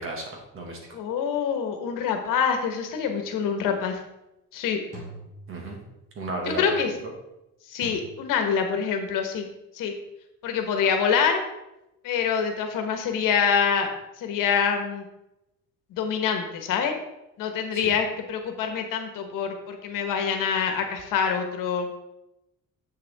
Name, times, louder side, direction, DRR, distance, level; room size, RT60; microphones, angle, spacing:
voice 1, 0.0-1.0 5.5-5.8 6.2-6.8 7.0-7.1 17.7-17.9, right 2 dB, 40° right, 1 dB, 1.7 m, -34 dB
voice 2, 0.9-4.0 4.5-4.8 6.5-6.9 7.7-9.5 9.7-9.9 10.4-11.4 12.0-13.9 14.2-15.0 15.9-16.9 17.4-21.9, left 6 dB, 75° left, 5 dB, 1.3 m, -25 dB
sound 1, 2.9-3.3 4.9-6.2 7.8-7.9, right 1 dB, 20° right, 3.2 m, -44 dB
7.7 x 6.8 x 3.5 m, 0.91 s
cardioid pair, 165°, 33 cm